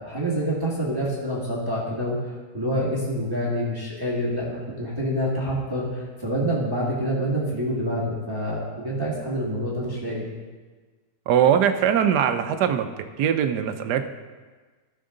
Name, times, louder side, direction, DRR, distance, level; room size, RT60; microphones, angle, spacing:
voice 1, 0.0-10.3, equal, 15° right, -6 dB, 1.8 m, -27 dB
voice 2, 11.3-12.9 13.2-14.1, right 9 dB, 80° right, 8 dB, 1.2 m, -21 dB
16.0 x 6.2 x 3.8 m, 1.4 s
omnidirectional pair, 1.8 m